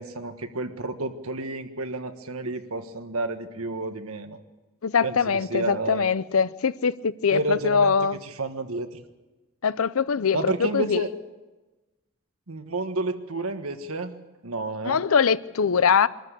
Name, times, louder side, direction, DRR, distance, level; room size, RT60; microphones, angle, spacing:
voice 1, 0.0-4.4 5.0-6.0 7.3-8.0 8.2-9.0 10.3-11.1 12.5-14.1 14.4-15.0, right 2 dB, 90° right, 1.5 m, -30 dB
voice 2, 4.8-8.2 9.6-11.0 14.8-16.1, left 6 dB, 80° left, 0.6 m, -22 dB
23.5 x 13.5 x 8.3 m
head